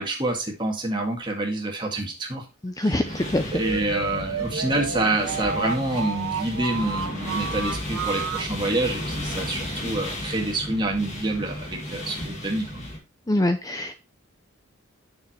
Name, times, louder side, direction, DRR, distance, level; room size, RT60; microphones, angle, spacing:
voice 1, 0.0-2.4 2.8-3.1 3.5-12.7, right 2 dB, 20° right, 1 dB, 1.9 m, -27 dB
voice 2, 2.6-3.5 13.3-14.0, left 1 dB, 15° left, 8 dB, 0.4 m, -24 dB
sound 1, 3.0-13.0, left 1 dB, 35° left, 2.1 m, -34 dB
sound 2, 3.5-8.5, right 5 dB, 75° right, 1.0 m, -31 dB
9.1 x 6.8 x 3.0 m, 0.27 s
head